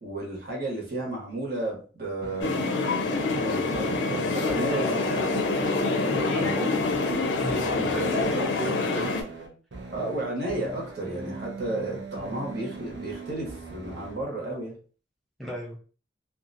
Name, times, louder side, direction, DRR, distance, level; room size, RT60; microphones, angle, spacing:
voice 1, 0.0-2.6 3.4-5.2 6.4-6.7 7.7-8.8 9.9-14.8, right 2 dB, 60° right, -1 dB, 1.0 m, -33 dB
sound 1, 2.2-14.2, right 3 dB, 75° right, 0.6 m, -40 dB
sound 2, 2.4-9.2, left 3 dB, 80° left, 0.5 m, -26 dB
voice 2, 6.1-6.7 7.4-9.2 15.4-15.8, equal, ahead, -2 dB, 0.6 m, -35 dB
2.5 x 2.3 x 2.5 m, 0.39 s
head